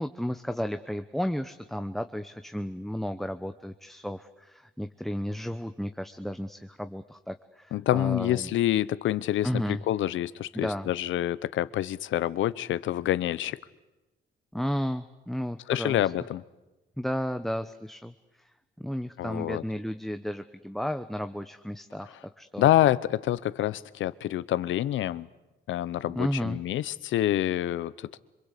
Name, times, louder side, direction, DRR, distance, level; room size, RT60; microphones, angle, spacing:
voice 1, 0.0-8.5 9.4-9.8 10.5-10.9 14.5-16.1 17.0-18.1 18.8-22.7 26.1-26.6, equal, ahead, 8 dB, 0.9 m, -33 dB
voice 2, 7.7-13.6 15.7-16.4 19.2-19.6 22.6-25.3 25.7-28.2, left 13 dB, 75° left, 18 dB, 0.8 m, -27 dB
26.5 x 22.0 x 8.4 m, 1.1 s
cardioid pair, 90°, 20 cm